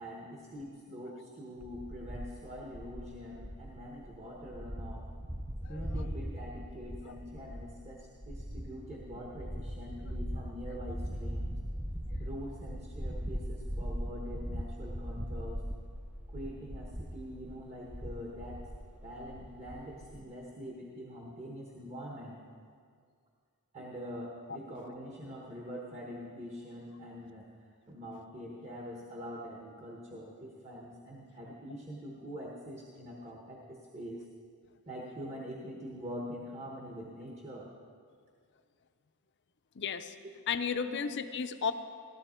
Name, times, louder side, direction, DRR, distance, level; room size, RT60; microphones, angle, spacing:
voice 1, 0.0-5.1 5.7-11.6 12.2-15.6 16.3-18.6 19.0-22.4 23.7-34.3 34.9-37.7 40.2-40.3 40.9-41.1, equal, 30° right, -2 dB, 1.2 m, -44 dB
sound 1, 1.6-20.2, equal, 5° right, 0.5 m, -40 dB
voice 2, 39.8-40.1 40.5-41.7, left 6 dB, 50° left, 10 dB, 0.6 m, -33 dB
16.0 x 12.0 x 4.4 m, 2.1 s
head